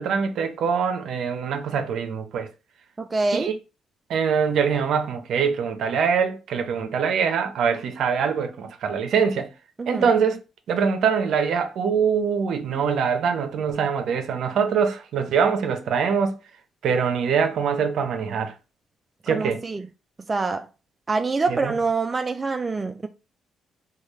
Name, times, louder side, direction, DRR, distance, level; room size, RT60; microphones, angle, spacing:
voice 1, 0.0-2.5 3.3-3.5 4.1-9.5 9.9-10.4 10.7-16.3 16.8-18.5 19.2-19.6 21.5-21.8, right 6 dB, 70° right, 0.6 m, -23 dB
voice 2, 3.0-3.5 9.8-10.1 19.3-19.8 20.3-20.7 21.1-23.1, right 3 dB, 25° right, 0.3 m, -25 dB
3.2 x 2.3 x 3.2 m
cardioid pair, 90°, 0 cm